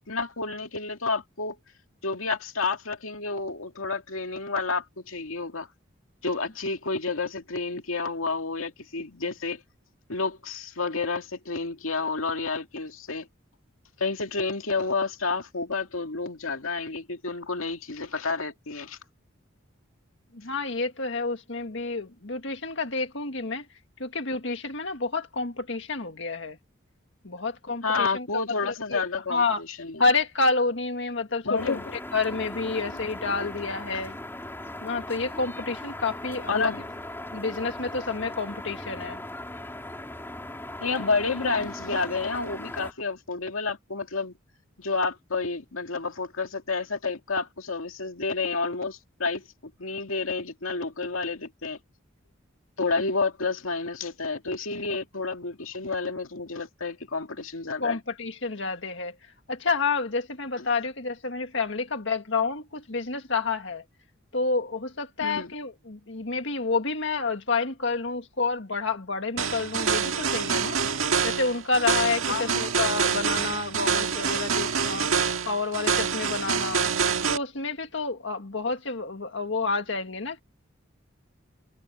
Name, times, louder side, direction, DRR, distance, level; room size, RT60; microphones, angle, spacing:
voice 1, 0.1-1.6 2.0-5.7 6.2-9.6 10.1-13.3 14.0-19.0 27.8-30.0 31.4-32.0 32.9-33.0 33.9-34.1 36.5-36.9 40.8-44.3 44.8-51.8 52.8-58.0 60.6-60.7 65.2-65.5 72.3-72.6, left 4 dB, 85° left, 2.2 m, -30 dB
voice 2, 20.3-23.7 24.0-26.6 27.2-28.3 28.9-29.0 29.3-29.6 30.0-31.8 32.1-34.2 34.8-36.7 37.3-39.2 57.8-59.2 59.5-63.8 64.3-70.8 71.2-75.1 75.4-76.9 77.3-80.4, left 4 dB, 60° left, 1.8 m, -29 dB
sound 1, 31.6-42.9, left 1 dB, 10° left, 4.1 m, -38 dB
sound 2, 69.4-77.4, right 6 dB, 85° right, 1.8 m, -26 dB
head